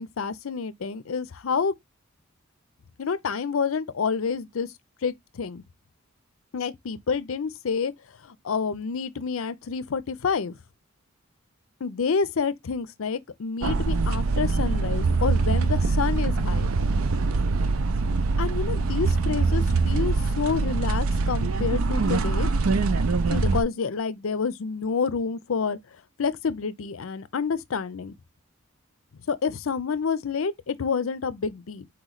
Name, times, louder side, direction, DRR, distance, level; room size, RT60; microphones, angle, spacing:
voice 1, 0.0-1.7 3.0-4.7 5.0-5.6 6.5-7.9 8.2-10.5 11.8-16.7 18.4-22.5 23.3-25.8 26.2-28.1 29.3-31.9, left 5 dB, 75° left, 0.5 m, -28 dB
sound 1, 13.6-23.6, right 3 dB, 80° right, 0.5 m, -23 dB
4.4 x 3.1 x 3.9 m
head